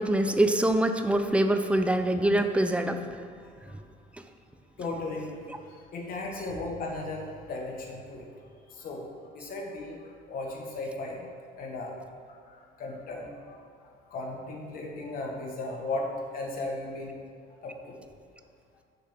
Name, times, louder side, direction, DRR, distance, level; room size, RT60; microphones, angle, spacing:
voice 1, 0.0-3.0, right 1 dB, 5° right, 8 dB, 0.4 m, -24 dB
voice 2, 4.8-8.2 8.7-11.3 11.6-12.0 12.3-17.2 17.6-17.9, left 2 dB, 60° left, -1 dB, 1.3 m, -36 dB
6.5 x 3.4 x 5.7 m, 2.2 s
cardioid pair, 110°, 17 cm